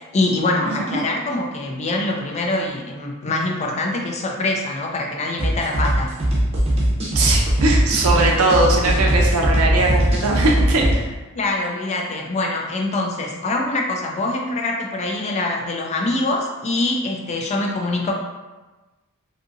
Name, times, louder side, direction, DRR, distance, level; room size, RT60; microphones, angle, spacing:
voice 1, 0.0-6.2 11.4-18.1, left 2 dB, 30° left, 1 dB, 0.4 m, -24 dB
voice 2, 0.6-1.0 7.1-11.1, right 2 dB, 70° right, -1 dB, 0.5 m, -20 dB
sound 1, 5.4-10.9, right 1 dB, 30° right, 0.7 m, -19 dB
2.6 x 2.6 x 2.5 m, 1.2 s
head